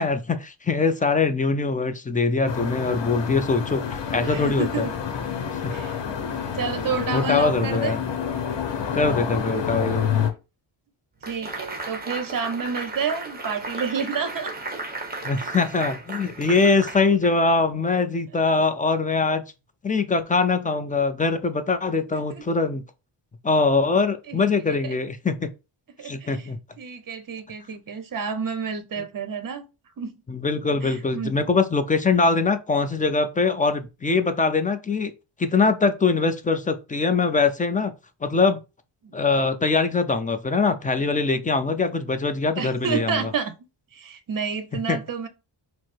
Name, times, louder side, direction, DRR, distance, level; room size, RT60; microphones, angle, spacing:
voice 1, 0.0-4.8 5.6-5.7 7.1-8.0 8.9-10.3 15.2-19.4 19.8-22.8 23.4-25.5 26.0-26.6 30.3-35.1 35.4-37.9 38.2-38.6 39.1-43.3 44.7-45.0, left 4 dB, 20° left, 0.4 m, -22 dB
sound 1, 2.5-10.3, left 7 dB, 60° left, 0.9 m, -28 dB
voice 2, 4.2-4.9 5.7-6.0 6.5-7.9 11.3-14.5 22.1-22.4 24.3-24.5 24.8-25.0 26.0-26.5 26.8-29.7 30.0-30.2 30.8-31.4 39.0-39.1 42.6-43.6 43.9-45.3, right 6 dB, 45° right, 0.8 m, -30 dB
sound 2, 11.2-17.7, right 2 dB, 20° right, 1.0 m, -35 dB
4.6 x 2.0 x 4.3 m
cardioid pair, 115°, 48 cm